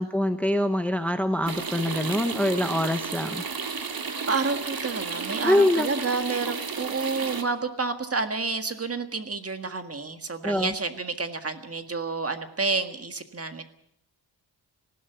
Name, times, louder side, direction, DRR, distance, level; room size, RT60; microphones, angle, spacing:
voice 1, 0.0-3.4 5.4-5.9 10.4-10.7, left 1 dB, 5° left, 8 dB, 0.9 m, -24 dB
sound 1, 1.5-7.4, right 5 dB, 55° right, 2.1 m, -33 dB
voice 2, 4.3-13.6, right 4 dB, 30° right, 8 dB, 1.7 m, -29 dB
19.5 x 16.0 x 9.2 m, 0.77 s
wide cardioid pair, 155°, 43 cm